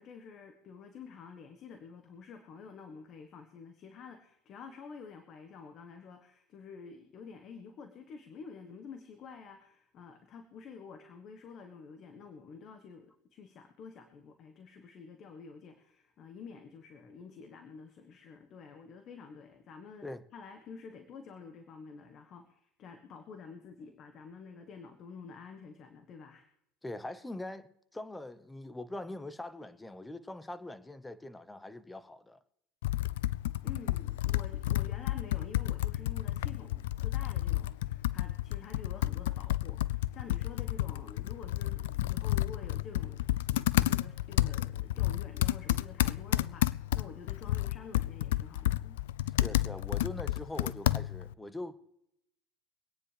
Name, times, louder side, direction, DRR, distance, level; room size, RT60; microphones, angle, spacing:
voice 1, 0.0-26.5 33.6-49.0, left 5 dB, 45° left, 1.5 m, -49 dB
voice 2, 26.8-32.4 49.4-51.8, left 2 dB, 10° left, 1.0 m, -42 dB
Computer keyboard, 32.8-51.3, left 15 dB, 85° left, 0.4 m, -31 dB
24.5 x 9.7 x 3.4 m
supercardioid pair, 105°, 0 cm